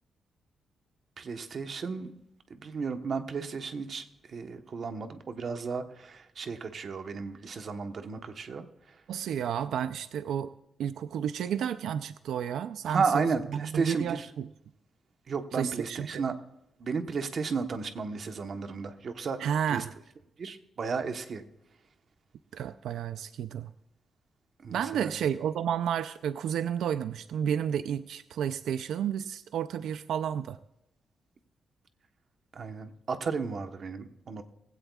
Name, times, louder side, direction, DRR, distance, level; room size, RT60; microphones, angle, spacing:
voice 1, 1.2-2.1 2.5-8.6 9.3-9.4 12.8-14.3 15.3-16.3 16.8-19.4 19.7-19.8 20.4-21.4 24.6-25.1 32.5-34.4, right 5 dB, 45° right, 7 dB, 1.1 m, -33 dB
voice 2, 9.1-10.5 10.8-13.0 13.5-14.5 15.5-16.2 19.4-19.9 22.5-23.7 24.7-30.6, right 9 dB, 90° right, 12 dB, 0.4 m, -31 dB
19.5 x 16.0 x 2.4 m, 0.84 s
wide cardioid pair, 165°, 0 cm